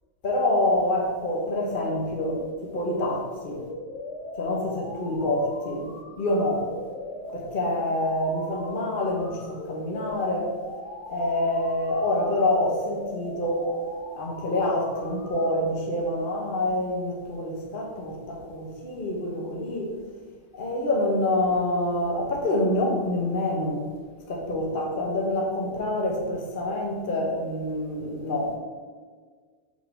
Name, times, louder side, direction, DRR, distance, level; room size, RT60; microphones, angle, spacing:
voice 1, 0.2-3.6 4.4-5.9 6.2-6.7 7.3-10.6 11.0-13.7 14.1-19.9 20.5-23.8 24.3-28.6, left 1 dB, 45° left, 0 dB, 1.2 m, -26 dB
sound 1, 3.6-15.6, left 2 dB, 70° left, 1.2 m, -41 dB
6.0 x 3.9 x 6.1 m, 1.5 s
omnidirectional pair, 1.3 m